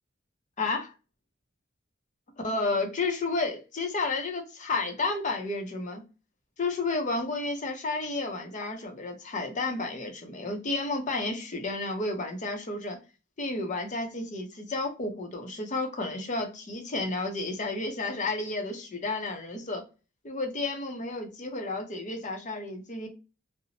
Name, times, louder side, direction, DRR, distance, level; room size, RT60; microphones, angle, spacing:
voice 1, 0.6-0.9 2.4-6.0 6.6-13.0 13.4-19.8 20.2-23.1, left 3 dB, 40° left, 0.6 m, -31 dB
2.8 x 2.0 x 2.7 m
head